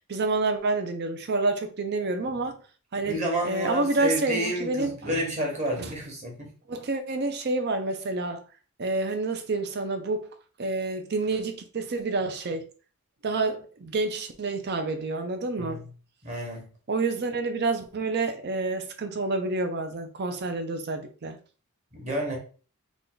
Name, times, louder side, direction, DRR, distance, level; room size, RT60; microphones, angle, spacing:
voice 1, 0.1-2.6 2.9-5.2 5.8-5.9 6.7-8.4 8.8-10.3 10.6-12.7 13.2-15.9 16.9-21.4, right 3 dB, 50° right, 0.6 m, -28 dB
voice 2, 3.0-6.5 15.6-15.9 16.2-16.7 21.9-22.4, equal, 30° right, 1.2 m, -30 dB
3.6 x 2.3 x 3.8 m
head